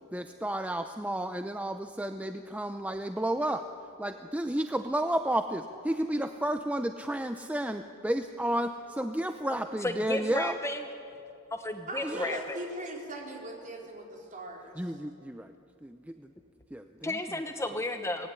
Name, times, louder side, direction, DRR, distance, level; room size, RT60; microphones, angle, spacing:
voice 1, 0.1-3.6 4.0-10.6 12.0-12.4 14.8-15.5 15.8-16.3 16.7-17.2, right 1 dB, 5° right, 7 dB, 0.6 m, -32 dB
voice 2, 9.5-10.9 11.5-12.7 17.0-18.3, left 1 dB, 15° left, 7 dB, 1.0 m, -33 dB
voice 3, 11.9-15.0, right 1 dB, 40° right, 0 dB, 4.4 m, -40 dB
24.5 x 19.5 x 9.9 m, 2.7 s
head